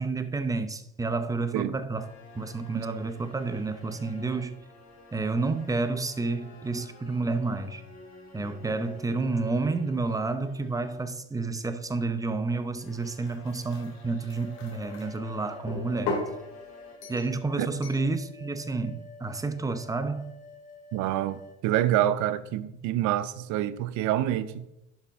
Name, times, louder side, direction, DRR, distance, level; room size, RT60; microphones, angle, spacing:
voice 1, 0.0-4.6 5.1-7.8 8.3-16.2 17.1-20.4, right 3 dB, 10° right, 0.6 m, -30 dB
sound 1, 2.0-11.2 12.7-17.0, equal, 45° left, 3.1 m, -51 dB
sound 2, 12.8-15.1 15.7-16.3 17.0-17.4 17.8-18.1, left 2 dB, 70° left, 2.7 m, -36 dB
sound 3, 14.0-21.6, left 4 dB, 25° left, 1.5 m, -48 dB
voice 2, 20.9-24.7, right 13 dB, 60° right, 0.7 m, -27 dB
11.5 x 5.2 x 3.6 m
supercardioid pair, 95°, 33 cm